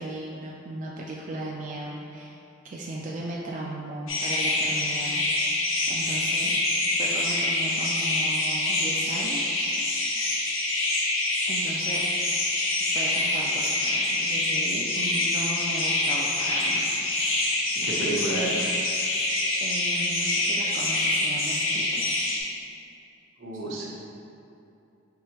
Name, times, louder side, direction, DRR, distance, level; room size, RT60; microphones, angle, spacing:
voice 1, 0.0-2.4 2.7-5.2 5.9-6.5 7.0-9.9 11.5-12.1 12.8-17.5 17.8-17.9 19.6-22.2, right 2 dB, 40° right, -3 dB, 0.3 m, -36 dB
sound 1, 4.1-22.4, left 2 dB, 90° left, 0.8 m, -26 dB
voice 2, 17.8-18.6 23.4-23.9, right 2 dB, 70° right, -4 dB, 0.8 m, -30 dB
4.7 x 3.3 x 3.1 m, 2.7 s
head